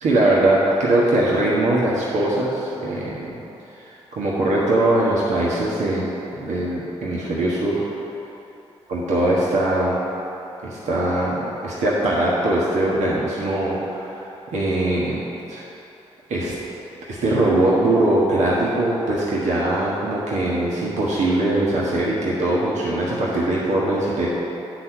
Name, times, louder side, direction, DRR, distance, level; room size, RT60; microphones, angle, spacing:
voice 1, 0.0-3.4 3.8-6.1 6.4-7.8 8.9-10.0 10.6-15.6 16.3-16.5 17.1-24.3, right 1 dB, 85° right, -6 dB, 1.3 m, -21 dB
9.0 x 4.2 x 6.2 m, 3.0 s
cardioid pair, 55°, 12 cm